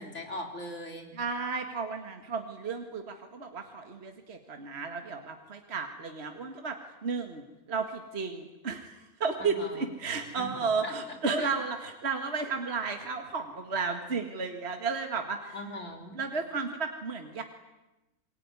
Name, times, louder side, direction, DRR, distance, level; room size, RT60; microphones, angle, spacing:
voice 1, 0.0-1.2 9.4-9.9 10.3-11.5 15.5-16.1, left 1 dB, 50° left, 4 dB, 4.3 m, -40 dB
voice 2, 1.1-6.8 7.0-7.4 7.7-15.6 16.1-17.4, right 4 dB, 45° right, 5 dB, 2.1 m, -33 dB
27.5 x 22.5 x 9.7 m, 1.0 s
omnidirectional pair, 1.6 m